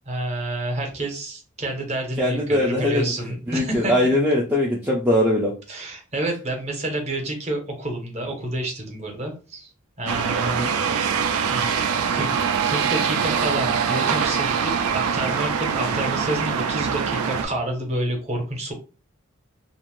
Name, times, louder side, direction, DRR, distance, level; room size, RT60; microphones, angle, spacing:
voice 1, 0.1-3.9 5.7-9.7 10.0-10.7 11.5-11.7 12.1-12.3 12.6-18.7, right 1 dB, 30° right, 1 dB, 0.7 m, -29 dB
voice 2, 2.2-3.1 3.5-5.5 10.6-10.7, left 1 dB, 10° right, -4 dB, 0.3 m, -21 dB
sound 1, 10.1-17.4, right 6 dB, 85° right, 0.3 m, -23 dB
2.5 x 2.0 x 3.0 m, 0.34 s
head